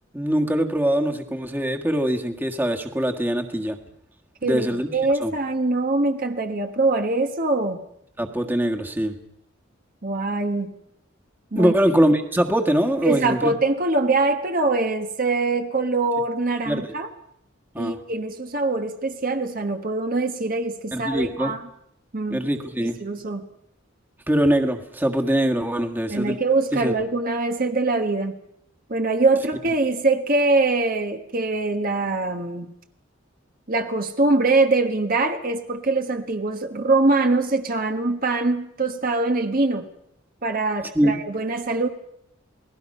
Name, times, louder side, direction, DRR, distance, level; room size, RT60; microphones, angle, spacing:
voice 1, 0.1-3.8 4.4-4.9 5.2-5.3 8.2-9.2 11.5-13.5 16.7-16.9 17.7-18.0 20.9-21.5 22.3-23.0 24.3-26.4 26.7-26.9 40.9-41.2, right 1 dB, 10° right, 3 dB, 1.7 m, -22 dB
voice 2, 4.4-7.8 10.0-10.7 11.5-11.7 13.0-17.1 17.8-21.6 22.1-22.4 22.8-23.4 26.1-28.4 28.9-32.7 33.7-39.9 40.4-41.9, right 3 dB, 45° right, 6 dB, 1.3 m, -23 dB
28.5 x 19.5 x 5.5 m, 0.75 s
head